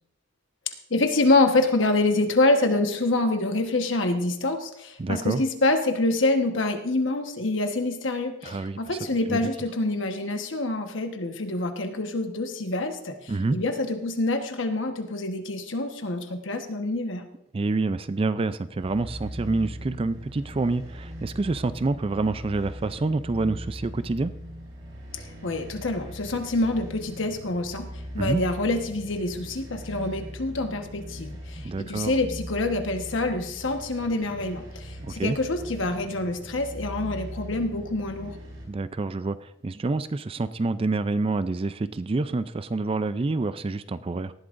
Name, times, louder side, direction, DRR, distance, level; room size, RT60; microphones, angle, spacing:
voice 1, 0.9-17.3 25.1-27.9 28.1-38.4, left 2 dB, 75° left, 5 dB, 1.3 m, -26 dB
voice 2, 5.0-5.4 8.4-8.8 9.3-9.5 13.3-13.6 17.5-24.3 28.2-28.4 31.5-32.1 35.0-35.4 38.7-44.3, right 3 dB, 30° right, 14 dB, 0.4 m, -27 dB
sound 1, 18.7-38.6, equal, 85° right, 5.4 m, -40 dB
18.5 x 12.0 x 2.6 m, 0.82 s
head